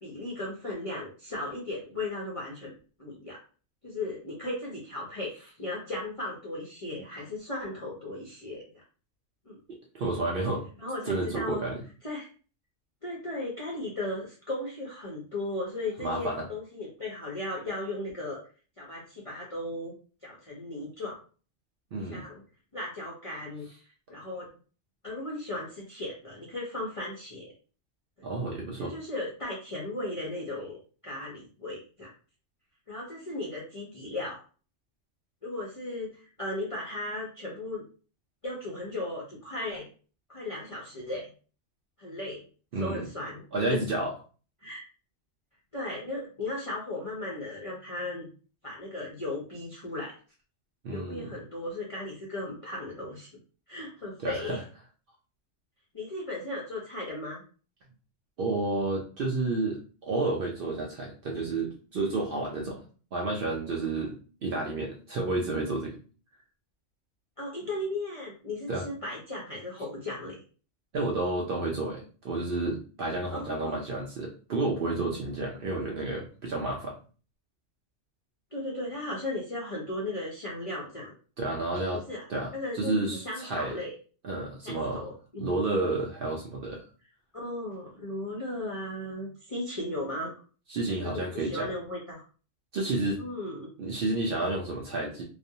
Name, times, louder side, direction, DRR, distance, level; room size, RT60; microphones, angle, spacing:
voice 1, 0.0-2.7 3.0-3.4 3.8-8.7 9.5-9.6 10.8-11.6 12.0-12.3 13.0-18.4 18.8-19.9 20.2-21.2 21.9-22.4 22.7-23.7 24.1-24.5 25.0-27.5 28.8-30.8 31.0-32.1 32.9-34.4 35.4-37.8 38.4-39.9 40.3-41.2 42.0-42.4 42.8-43.8 44.6-44.8 45.7-48.3 48.6-50.2 50.9-53.3 53.7-54.6 55.9-57.4 67.4-70.4 73.3-73.8 78.5-81.1 81.7-82.2 82.5-83.9 84.6-85.5 87.3-90.3 90.9-92.2 93.2-93.7, left 2 dB, 45° left, -4 dB, 0.4 m, -36 dB
voice 2, 9.7-10.6 11.1-11.8 16.0-16.4 21.9-22.2 28.2-28.9 42.7-43.1 43.5-44.1 50.8-51.3 54.2-54.6 58.4-59.8 60.0-62.8 63.1-66.0 68.7-68.8 70.9-77.0 81.4-82.0 82.3-83.7 84.2-85.0 85.4-86.8 90.7-91.7 92.7-93.2 93.8-95.2, right 2 dB, 60° right, -1 dB, 0.6 m, -31 dB
2.4 x 2.0 x 2.7 m, 0.38 s
omnidirectional pair, 1.3 m